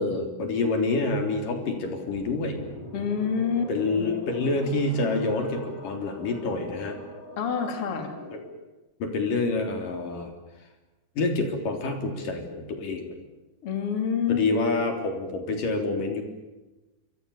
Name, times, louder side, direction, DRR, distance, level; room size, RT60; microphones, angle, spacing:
voice 1, 0.0-2.6 3.7-7.0 8.3-8.4 9.0-10.3 11.2-13.2 14.3-16.2, left 3 dB, 80° left, 4 dB, 5.2 m, -27 dB
sound 1, 2.1-8.6, left 2 dB, 30° left, 5.6 m, -43 dB
voice 2, 2.9-3.7 4.0-4.1 7.4-8.1 13.6-14.4, left 6 dB, 45° left, 5 dB, 3.7 m, -27 dB
27.5 x 25.5 x 7.2 m, 1.1 s
omnidirectional pair, 3.8 m